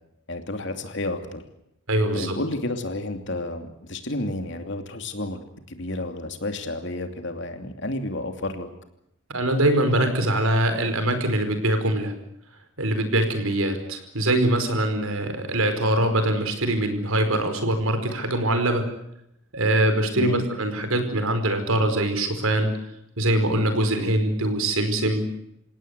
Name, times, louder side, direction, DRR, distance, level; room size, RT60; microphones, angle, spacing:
voice 1, 0.3-1.4 2.1-5.4 5.7-8.7 20.1-20.4, left 1 dB, 55° left, 6 dB, 2.8 m, -31 dB
voice 2, 1.9-2.4 9.3-12.1 12.8-18.8 19.5-22.7 23.2-25.2, right 1 dB, 80° right, 8 dB, 4.9 m, -23 dB
28.5 x 17.5 x 8.2 m, 0.79 s
head